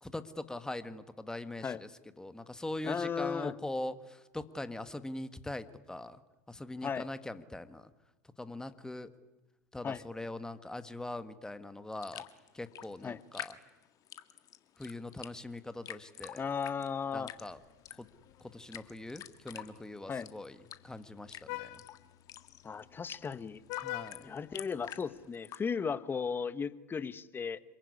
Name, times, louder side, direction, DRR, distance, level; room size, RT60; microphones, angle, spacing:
voice 1, 0.0-1.9 2.2-6.2 6.5-7.9 8.4-9.1 9.7-12.2 12.5-13.6 14.8-16.5 17.1-17.6 18.0-18.1 18.5-20.6 20.8-21.8 23.8-24.4, left 2 dB, 5° left, 11 dB, 1.8 m, -42 dB
voice 2, 2.8-3.5 6.8-7.1 9.8-10.0 13.0-13.2 16.4-17.3 20.1-20.3 22.6-23.6 24.2-27.6, left 6 dB, 25° left, 15 dB, 1.3 m, -35 dB
sound 1, 11.9-25.6, left 11 dB, 45° left, 1.8 m, -48 dB
Vehicle horn car horn honking, 17.2-25.3, left 18 dB, 60° left, 1.1 m, -48 dB
26.5 x 22.5 x 9.9 m, 1.1 s
hypercardioid pair, 85°, 9 cm